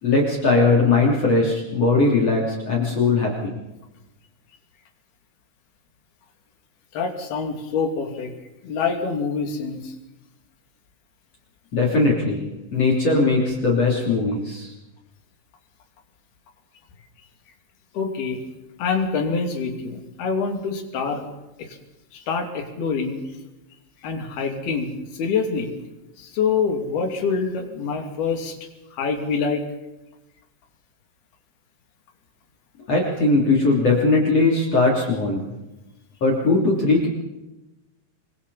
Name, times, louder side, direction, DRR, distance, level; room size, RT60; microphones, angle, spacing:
voice 1, 0.0-3.5 11.7-12.4 12.7-14.7 32.9-35.5 36.2-37.1, left 3 dB, 40° left, -2 dB, 4.0 m, -19 dB
voice 2, 6.9-8.3 8.6-9.9 17.9-18.4 18.8-21.2 21.6-21.8 22.1-23.2 24.0-25.7 26.2-28.6 28.9-29.6, left 5 dB, 65° left, 3 dB, 4.6 m, -25 dB
27.5 x 24.0 x 4.3 m, 0.97 s
omnidirectional pair, 4.9 m